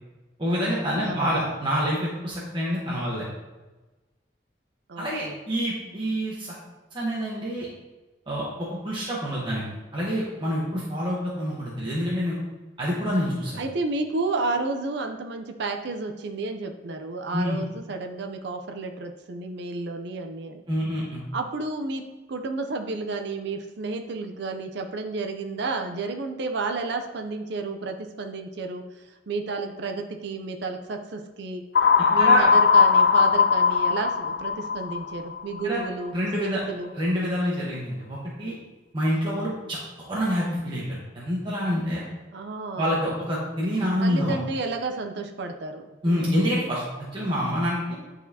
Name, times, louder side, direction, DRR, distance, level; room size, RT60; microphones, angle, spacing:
voice 1, 0.4-3.3 5.0-6.5 6.9-7.7 8.3-9.6 9.9-12.4 12.8-13.6 17.3-17.6 20.7-21.2 32.2-32.5 35.6-35.8 36.1-36.6 37.0-38.5 38.9-39.8 40.1-42.0 42.8-44.3 46.0-46.8 47.1-48.0, equal, 25° right, -7 dB, 1.1 m, -27 dB
voice 2, 1.0-1.5 4.9-5.4 13.6-20.6 21.3-31.6 32.1-36.9 42.3-43.0 44.0-46.4, right 3 dB, 60° right, 4 dB, 0.5 m, -31 dB
sound 1, 31.8-35.6, left 6 dB, 60° left, 0.4 m, -19 dB
10.5 x 4.2 x 2.8 m, 1.2 s
head